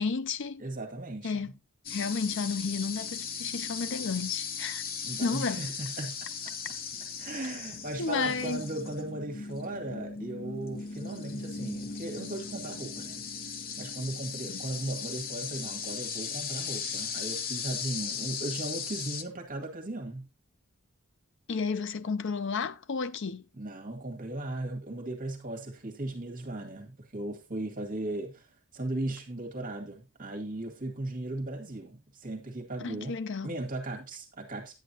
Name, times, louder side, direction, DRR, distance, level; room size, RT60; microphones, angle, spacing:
voice 1, 0.0-0.6 1.2-1.5 1.9-4.8 5.2-5.6 8.0-8.7 21.5-23.5 32.8-33.5, left 5 dB, 60° left, 0.6 m, -32 dB
voice 2, 0.6-1.5 5.0-6.5 7.2-13.2 13.8-20.3 23.5-34.8, right 2 dB, 40° right, 2.0 m, -37 dB
sound 1, 1.8-19.2, left 6 dB, 45° left, 0.9 m, -37 dB
10.5 x 9.2 x 2.9 m
head